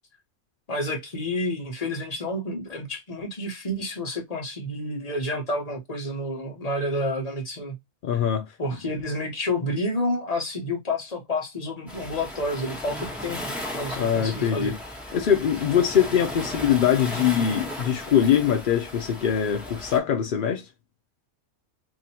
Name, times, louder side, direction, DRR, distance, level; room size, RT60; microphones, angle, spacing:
voice 1, 0.7-7.8 8.6-13.4 13.7-14.7, left 1 dB, 30° left, 1.0 m, -29 dB
voice 2, 8.0-8.5 14.0-14.8 15.1-20.7, left 9 dB, 70° left, 0.4 m, -22 dB
Waves surf, 11.9-20.0, left 1 dB, ahead, 1.2 m, -36 dB
2.8 x 2.7 x 4.1 m
omnidirectional pair, 1.5 m